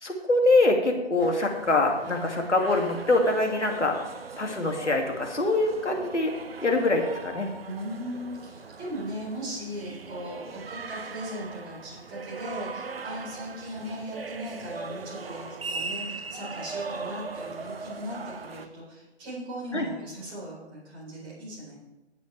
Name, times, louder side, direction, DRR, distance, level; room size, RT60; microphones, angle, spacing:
voice 1, 0.0-4.0 4.4-6.3 6.6-7.5 19.7-19.8, left 2 dB, 85° left, 2 dB, 2.5 m, -24 dB
sound 1, 1.2-18.7, right 4 dB, 60° right, 1.0 m, -40 dB
voice 2, 7.6-21.7, equal, 15° right, -6 dB, 4.2 m, -38 dB
18.0 x 8.4 x 3.4 m, 0.98 s
figure-of-eight pair, 150°, 34 cm